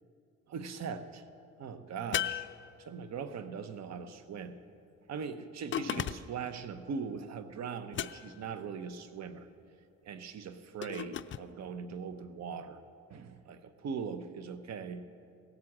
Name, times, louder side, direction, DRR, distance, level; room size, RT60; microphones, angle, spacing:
voice 1, 0.5-1.2 1.6-2.5 2.8-4.6 5.1-9.5 10.0-12.8 13.1-15.0, right 6 dB, 60° right, 10 dB, 0.9 m, -40 dB
sound 1, 2.1-3.2 5.7-6.5 7.9-8.5 10.8-11.5, left 10 dB, 40° left, 0.4 m, -36 dB
17.0 x 7.9 x 7.3 m, 2.4 s
cardioid pair, 90°, 30 cm